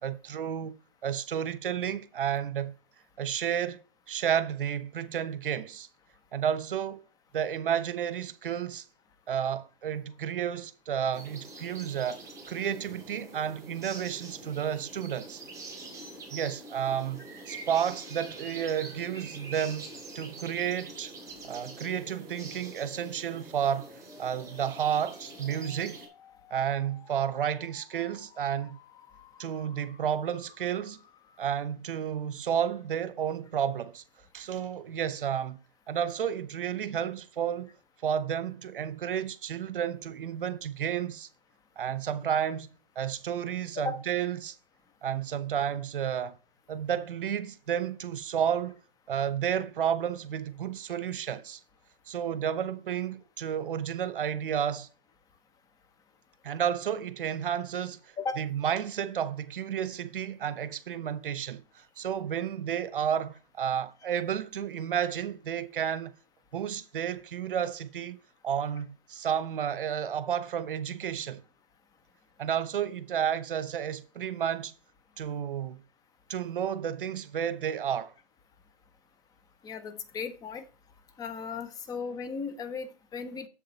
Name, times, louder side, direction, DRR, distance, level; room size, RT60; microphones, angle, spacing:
voice 1, 0.0-0.8 1.0-2.7 3.2-3.8 4.1-5.9 6.3-7.0 7.3-8.8 9.3-12.2 12.5-15.4 16.3-21.1 21.4-23.9 24.2-26.1 26.5-28.8 29.4-31.0 31.4-34.0 34.3-35.6 35.9-37.7 38.0-41.3 41.8-42.7 43.0-44.6 45.0-46.4 46.7-48.8 49.1-51.6 52.1-54.9 56.4-58.0 58.4-66.1 66.5-68.2 68.4-71.4 72.4-74.7 75.2-75.8 76.3-78.1, right 9 dB, 60° right, 1.1 m, -31 dB
sound 1, 11.1-26.1, right 2 dB, 10° right, 3.1 m, -45 dB
sound 2, 21.9-31.7, left 7 dB, 55° left, 1.8 m, -56 dB
voice 2, 79.6-80.6 81.2-83.5, left 5 dB, 10° left, 0.9 m, -36 dB
7.7 x 7.5 x 4.1 m
hypercardioid pair, 135°, 30 cm